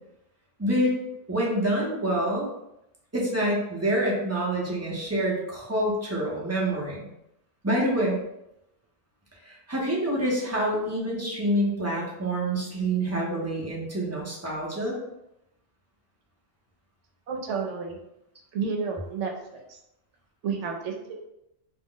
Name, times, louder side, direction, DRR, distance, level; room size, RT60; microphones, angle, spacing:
voice 1, 0.6-1.0 1.3-2.5 3.1-7.1 7.6-8.2 9.4-15.0, right 1 dB, 20° right, -5 dB, 0.5 m, -27 dB
voice 2, 17.3-18.0 18.5-19.3 19.7-19.8 20.4-21.2, right 5 dB, 80° right, 2 dB, 0.9 m, -30 dB
2.4 x 2.0 x 3.7 m, 0.84 s
omnidirectional pair, 1.2 m